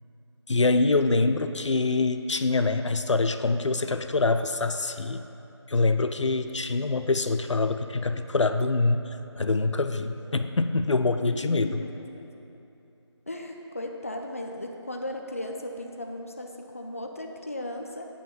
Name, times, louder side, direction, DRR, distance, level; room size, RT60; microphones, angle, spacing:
voice 1, 0.5-5.2 5.7-11.8, left 3 dB, 85° left, 9 dB, 0.5 m, -25 dB
voice 2, 11.3-12.3 13.3-18.1, left 1 dB, 30° left, 2 dB, 0.4 m, -36 dB
8.1 x 4.0 x 6.9 m, 2.9 s
figure-of-eight pair, 170°, 15 cm